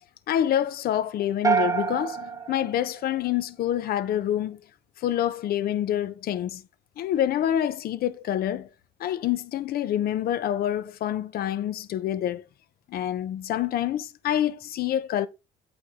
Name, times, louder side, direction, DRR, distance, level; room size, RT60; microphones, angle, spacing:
voice 1, 0.3-4.6 5.0-6.6 7.0-8.7 9.0-12.4 12.9-15.3, left 11 dB, 65° left, 0.9 m, -27 dB
sound 1, 1.4-3.7, right 6 dB, 20° right, 1.0 m, -27 dB
8.5 x 4.6 x 3.6 m
cardioid pair, 110°, 17 cm